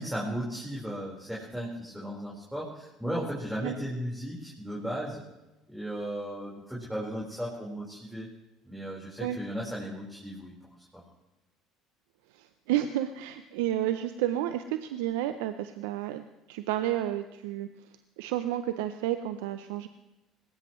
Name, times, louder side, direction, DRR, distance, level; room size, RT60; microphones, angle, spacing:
voice 1, 0.0-5.2 5.7-8.3 8.6-10.5 10.9-11.0, equal, 5° right, -5 dB, 4.5 m, -35 dB
voice 2, 12.3-17.9 18.2-19.9, right 12 dB, 80° right, 10 dB, 0.6 m, -31 dB
19.5 x 17.5 x 3.2 m, 0.99 s
hypercardioid pair, 70°, 0 cm